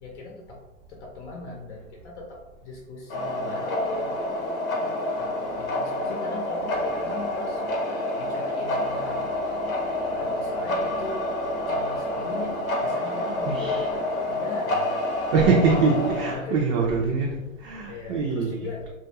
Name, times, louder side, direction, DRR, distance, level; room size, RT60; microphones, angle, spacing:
voice 1, 0.0-4.2 4.7-7.7 8.2-9.3 10.2-11.3 11.7-15.0 16.2-17.4 17.8-18.9, left 3 dB, 55° left, -1 dB, 0.7 m, -39 dB
sound 1, 3.1-16.4, left 1 dB, 90° left, 0.8 m, -28 dB
voice 2, 13.4-13.9 15.3-18.7, right 4 dB, 45° right, -2 dB, 0.5 m, -23 dB
2.3 x 2.2 x 2.9 m, 1.0 s
hypercardioid pair, 125°, 41 cm